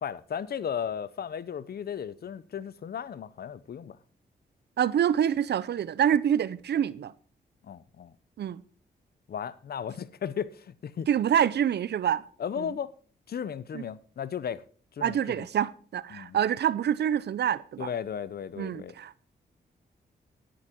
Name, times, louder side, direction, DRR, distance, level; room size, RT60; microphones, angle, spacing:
voice 1, 0.0-4.0 7.6-8.1 9.3-11.1 12.4-12.9 13.3-14.6 14.9-15.5 16.1-16.4 17.8-18.9, left 8 dB, 60° left, 0.8 m, -35 dB
voice 2, 4.8-7.1 8.4-8.6 11.1-12.2 12.6-12.7 13.7-13.8 15.0-17.9 18.6-19.2, right 9 dB, 70° right, 0.7 m, -26 dB
10.0 x 10.0 x 4.6 m
cardioid pair, 65°, 18 cm